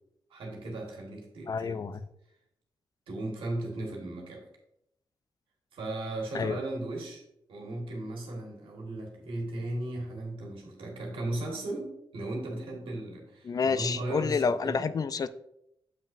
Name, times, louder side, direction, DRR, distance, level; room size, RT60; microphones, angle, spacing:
voice 1, 0.3-1.8 3.1-4.5 5.7-7.2 7.5-14.9, right 2 dB, 90° right, 0 dB, 1.7 m, -36 dB
voice 2, 1.5-2.0 6.3-6.6 13.4-15.3, left 5 dB, 45° left, 13 dB, 0.4 m, -29 dB
7.3 x 5.5 x 2.5 m, 0.78 s
cardioid pair, 80°, 9 cm